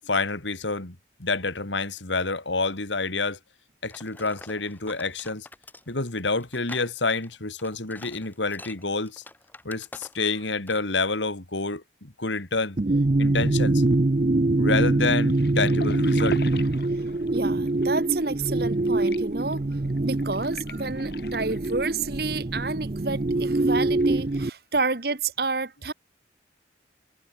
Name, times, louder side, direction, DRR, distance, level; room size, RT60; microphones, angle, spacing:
voice 1, 0.0-3.4 3.8-5.5 5.9-9.2 9.6-12.8 13.2-13.8 14.6-16.4, left 3 dB, 85° left, 3.0 m, -28 dB
sound 1, 3.9-10.4 10.7-10.9, left 2 dB, 10° left, 6.1 m, -46 dB
sound 2, 12.8-24.5, right 2 dB, 40° right, 0.6 m, -24 dB
sound 3, 15.2-24.5, left 2 dB, 60° left, 5.5 m, -42 dB
voice 2, 17.3-19.6 20.0-25.9, right 3 dB, 55° right, 1.5 m, -29 dB
head